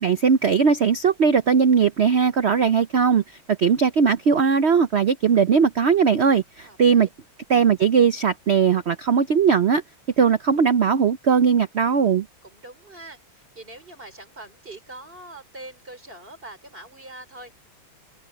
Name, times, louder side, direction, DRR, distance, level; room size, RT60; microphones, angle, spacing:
voice 1, 0.0-3.2 3.5-7.1 7.5-9.8 10.2-12.3, right 6 dB, 80° right, 0.5 m, -19 dB
voice 2, 6.6-7.1 12.4-17.6, right 2 dB, 25° right, 4.7 m, -43 dB
open air
omnidirectional pair, 2.2 m